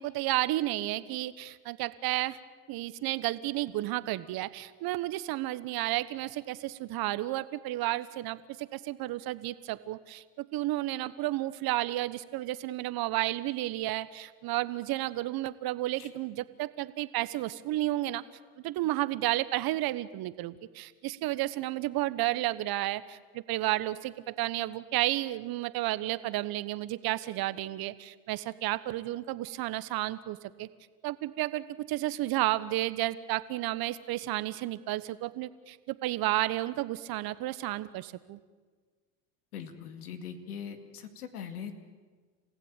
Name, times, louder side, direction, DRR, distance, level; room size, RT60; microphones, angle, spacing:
voice 1, 0.0-2.4 2.7-18.2 18.6-30.7 31.0-38.4, right 16 dB, 55° right, 15 dB, 1.2 m, -32 dB
voice 2, 39.5-41.7, left 7 dB, 90° left, 8 dB, 2.4 m, -41 dB
28.5 x 16.0 x 9.1 m, 1.5 s
hypercardioid pair, 85°, 43 cm